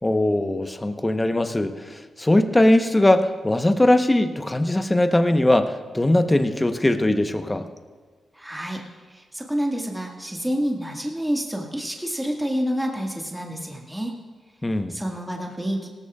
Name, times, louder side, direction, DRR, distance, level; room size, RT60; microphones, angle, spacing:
voice 1, 0.0-7.7 14.6-14.9, left 1 dB, 20° left, 8 dB, 1.0 m, -20 dB
voice 2, 8.4-8.8 9.1-14.1 14.9-15.9, equal, 5° right, 0 dB, 1.9 m, -28 dB
17.5 x 13.5 x 2.4 m, 1.4 s
supercardioid pair, 45°, 0 cm